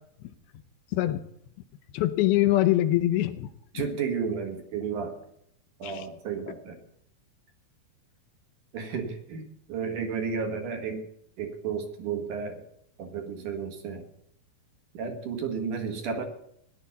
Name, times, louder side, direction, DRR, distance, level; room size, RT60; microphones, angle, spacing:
voice 1, 0.9-1.2 1.9-3.8 5.8-6.0, left 15 dB, 80° left, 10 dB, 2.4 m, -24 dB
voice 2, 3.7-5.2 5.8-6.8 8.7-11.1 11.4-12.6 13.0-14.0 14.9-16.3, right 6 dB, 60° right, 4 dB, 2.7 m, -32 dB
17.5 x 11.0 x 4.1 m, 0.73 s
omnidirectional pair, 4.5 m